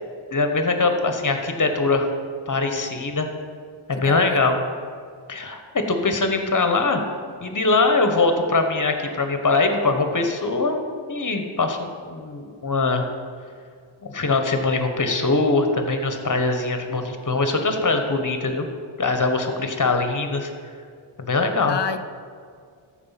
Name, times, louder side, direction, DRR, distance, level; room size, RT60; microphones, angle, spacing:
voice 1, 0.3-2.1 2.5-3.3 3.9-4.6 5.3-7.0 7.4-10.8 11.1-13.1 14.0-18.7 19.0-20.5 21.2-21.8, left 3 dB, 40° left, 6 dB, 1.2 m, -22 dB
voice 2, 4.0-4.5 21.7-22.0, left 7 dB, 60° left, 10 dB, 0.6 m, -29 dB
14.0 x 4.8 x 5.8 m, 2.2 s
wide cardioid pair, 70°, 48 cm